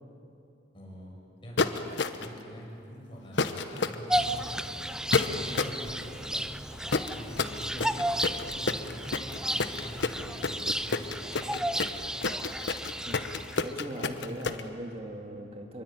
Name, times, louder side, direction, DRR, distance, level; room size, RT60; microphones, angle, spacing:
voice 1, 0.7-1.2 1.4-1.9 2.1-6.5 7.1-7.9 8.4-11.6, equal, 30° left, -3 dB, 7.5 m, -45 dB
sound 1, 1.6-2.4 3.4-4.0 5.1-5.8 6.9-14.6, left 4 dB, 70° left, 1.1 m, -29 dB
Bird vocalization bird call bird song, 4.1-13.7, right 1 dB, 5° right, 0.6 m, -33 dB
voice 2, 13.0-15.8, right 1 dB, 35° right, 3 dB, 2.5 m, -40 dB
25.0 x 23.5 x 9.1 m, 2.8 s
head